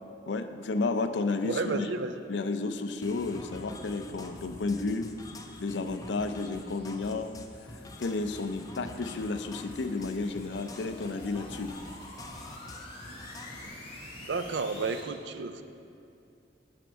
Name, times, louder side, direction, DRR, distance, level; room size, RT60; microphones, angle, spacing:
voice 1, 0.3-1.9 2.3-5.1 5.6-7.3 7.6-7.7 8.0-11.7, left 3 dB, 80° left, 9 dB, 0.5 m, -32 dB
voice 2, 1.4-2.2 14.2-15.6, right 4 dB, 80° right, 9 dB, 0.5 m, -32 dB
sound 1, 3.0-13.7, left 2 dB, 20° left, 0.5 m, -46 dB
sound 2, 4.8-15.0, left 1 dB, 35° left, 2.3 m, -50 dB
sound 3, 6.6-15.1, right 1 dB, 55° right, 1.3 m, -56 dB
12.0 x 5.2 x 4.6 m, 2.5 s
head